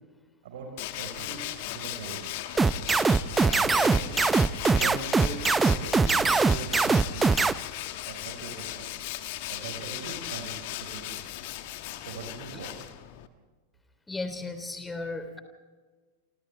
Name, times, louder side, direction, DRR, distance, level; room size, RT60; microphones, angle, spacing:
Tools, 0.8-13.3, left 14 dB, 50° left, 1.5 m, -37 dB
voice 1, 1.0-1.4 1.7-2.2 3.3-4.2 4.7-5.4 5.6-7.3 8.1-8.9 9.5-11.2 12.0-12.7, right 4 dB, 55° right, 3 dB, 4.7 m, -40 dB
sound 1, 2.6-7.5, right 4 dB, 10° right, 0.7 m, -21 dB
voice 2, 14.1-15.4, left 3 dB, 10° left, 8 dB, 3.3 m, -35 dB
28.5 x 27.5 x 3.4 m, 1.4 s
figure-of-eight pair, 90°, 0 cm